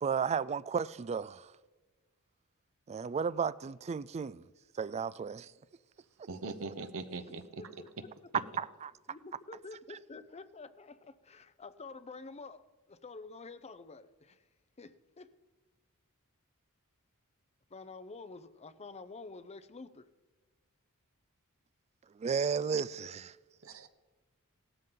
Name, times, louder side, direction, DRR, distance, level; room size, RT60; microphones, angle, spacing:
voice 1, 0.0-1.5 2.9-4.4 4.8-5.5 6.2-6.3 8.6-8.9 9.9-10.0 22.2-23.4, right 6 dB, 30° right, 0.3 m, -34 dB
voice 2, 6.3-7.8 23.6-23.9, right 3 dB, 65° right, 1.0 m, -41 dB
voice 3, 7.6-8.1 9.1-14.4 14.8-15.4 17.7-20.1, left 3 dB, 30° left, 0.6 m, -49 dB
18.0 x 13.0 x 3.9 m
head